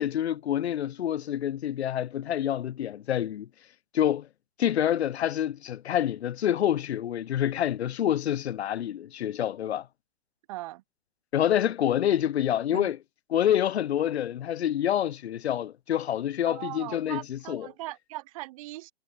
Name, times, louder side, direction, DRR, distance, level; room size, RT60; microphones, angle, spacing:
voice 1, 0.0-3.5 3.9-4.3 4.6-9.9 11.3-13.0 13.3-17.7, left 10 dB, 80° left, 0.6 m, -27 dB
voice 2, 10.5-10.8 12.7-12.9 16.5-18.9, right 18 dB, 35° right, 0.5 m, -39 dB
hypercardioid pair, 130°, 32 cm